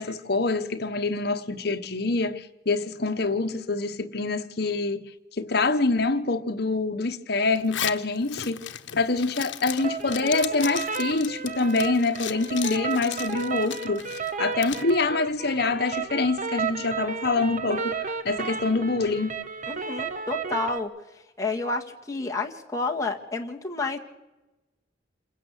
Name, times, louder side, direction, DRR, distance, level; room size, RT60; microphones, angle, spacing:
voice 1, 0.0-5.0 5.4-8.6 9.0-14.0 14.4-18.0 18.2-19.4, left 3 dB, 60° left, 1.2 m, -25 dB
Zipper (clothing), 7.6-14.9, left 11 dB, 90° left, 1.0 m, -36 dB
sound 1, 9.8-20.8, right 5 dB, 45° right, 1.4 m, -33 dB
voice 2, 19.7-20.9 21.4-24.0, left 3 dB, 20° left, 1.7 m, -30 dB
27.5 x 15.5 x 8.3 m
head